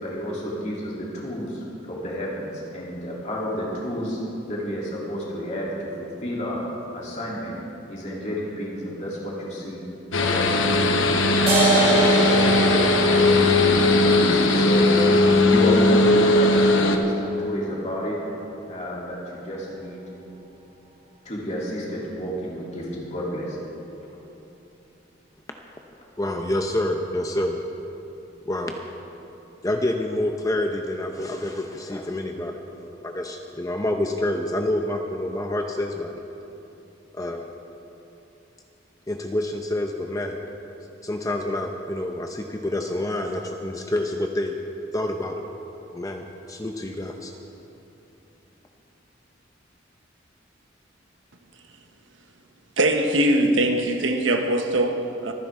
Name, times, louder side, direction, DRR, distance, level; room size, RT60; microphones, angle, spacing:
voice 1, 0.0-4.2 4.5-6.6 6.9-7.6 7.9-9.8 10.2-11.3 11.7-14.8 15.4-18.2 18.7-20.0 21.2-23.6, equal, 40° left, 3.1 m, -30 dB
sound 1, 10.1-17.0, left 2 dB, 85° left, 1.0 m, -18 dB
sound 2, 11.5-18.4, right 3 dB, 35° right, 3.8 m, -27 dB
voice 2, 26.2-27.6 28.5-28.8 29.6-36.2 37.1-37.5 39.1-40.4 41.0-44.6 44.9-45.4 45.9-47.3, left 1 dB, 15° left, 0.6 m, -27 dB
voice 3, 52.8-55.3, right 1 dB, 80° right, 1.1 m, -21 dB
24.0 x 10.5 x 3.7 m
head